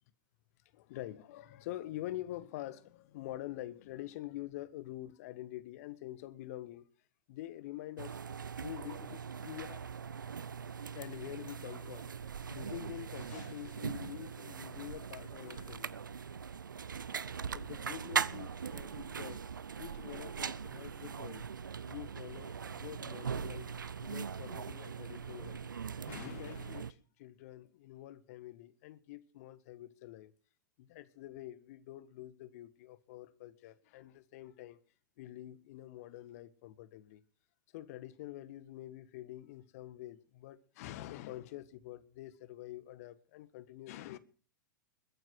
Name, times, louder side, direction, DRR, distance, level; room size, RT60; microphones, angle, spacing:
voice 1, 0.7-6.9 7.3-8.2 8.6-9.9 10.9-12.1 12.5-16.0 17.5-19.4 19.8-21.5 21.8-23.7 24.0-25.7 26.1-30.3 30.8-34.8 35.2-37.2 37.7-44.2, left 15 dB, 50° left, 1.5 m, -46 dB
sound 1, 8.0-26.9, right 6 dB, 75° right, 0.8 m, -41 dB
21.5 x 9.4 x 6.3 m
figure-of-eight pair, 100°, 11 cm